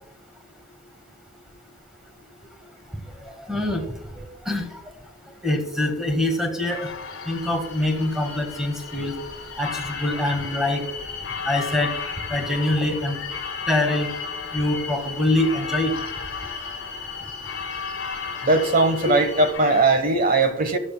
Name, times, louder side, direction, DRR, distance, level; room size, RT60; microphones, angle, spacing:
voice 1, 3.2-4.8 5.4-6.9 7.2-9.1 9.6-10.9 11.4-11.9 12.3-13.2 13.7-14.1 14.5-15.9, left 1 dB, ahead, 4 dB, 1.5 m, -24 dB
sound 1, 6.7-19.8, left 5 dB, 85° left, 1.3 m, -35 dB
sound 2, 7.3-19.5, left 4 dB, 40° left, 4.0 m, -38 dB
voice 2, 18.4-20.8, right 2 dB, 45° right, 10 dB, 1.1 m, -19 dB
13.0 x 12.0 x 2.2 m, 0.84 s
head